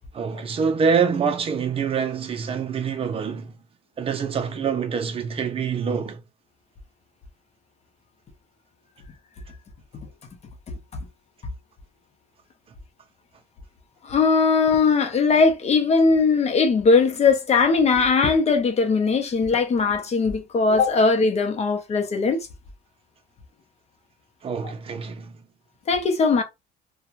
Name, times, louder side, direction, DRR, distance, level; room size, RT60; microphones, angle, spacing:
voice 1, 0.1-3.5 4.0-6.2 24.4-25.4, right 6 dB, 35° right, 0.6 m, -25 dB
voice 2, 14.0-22.4 25.9-26.4, left 4 dB, 40° left, 0.7 m, -19 dB
2.9 x 2.2 x 2.4 m
cardioid pair, 110°, 17 cm